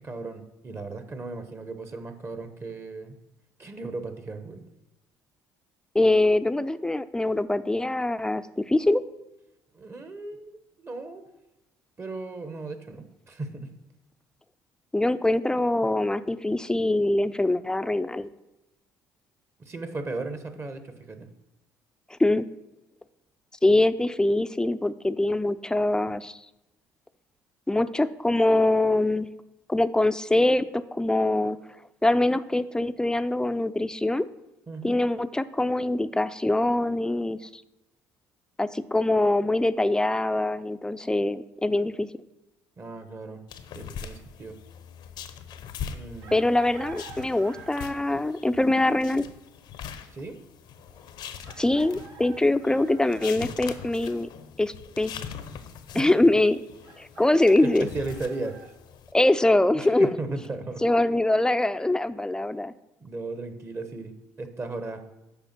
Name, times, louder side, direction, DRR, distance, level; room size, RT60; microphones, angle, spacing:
voice 1, 0.0-3.2 3.6-4.7 9.7-11.3 12.0-13.7 19.6-21.3 34.7-35.0 42.8-43.4 43.7-44.6 45.9-46.4 50.1-50.4 55.9-56.1 57.6-58.7 59.7-60.8 63.0-65.1, right 3 dB, 35° right, 9 dB, 1.1 m, -36 dB
voice 2, 5.9-9.0 14.9-18.3 22.2-22.5 23.6-26.4 27.7-29.3 29.7-31.6 32.0-34.3 34.8-37.6 38.6-42.1 46.3-49.2 51.6-54.3 54.6-55.2 55.9-56.6 57.0-57.9 59.1-60.2 60.8-62.7, left 2 dB, 10° left, 13 dB, 0.4 m, -23 dB
sound 1, 43.5-59.1, left 8 dB, 70° left, 0.7 m, -42 dB
Chicken rooster, 46.2-48.2 49.8-49.9 51.4-53.3 56.8-58.7, right 6 dB, 70° right, 1.1 m, -48 dB
7.0 x 4.9 x 5.9 m, 0.95 s
hypercardioid pair, 65°, 8 cm